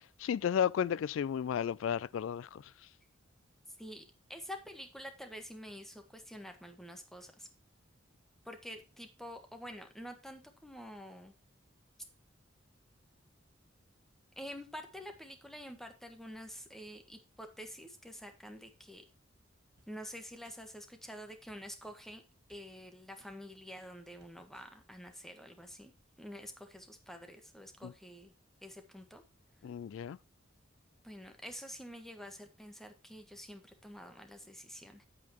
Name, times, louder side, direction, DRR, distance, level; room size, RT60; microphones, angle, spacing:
voice 1, 0.2-2.6 27.8-27.9 29.6-30.2, left 8 dB, 80° left, 0.3 m, -33 dB
voice 2, 4.3-7.5 8.4-11.3 14.4-19.0 19.9-22.2 22.5-25.9 26.2-28.3 28.6-29.2 31.0-35.1, equal, ahead, 1.5 m, -48 dB
sound 1, 19.8-19.9 20.4-20.6 21.5-21.9 22.5-22.6 23.2-23.3 23.9-24.0 24.2-24.7 25.1-25.2, right 3 dB, 60° right, 1.7 m, -66 dB
8.6 x 8.5 x 3.0 m
head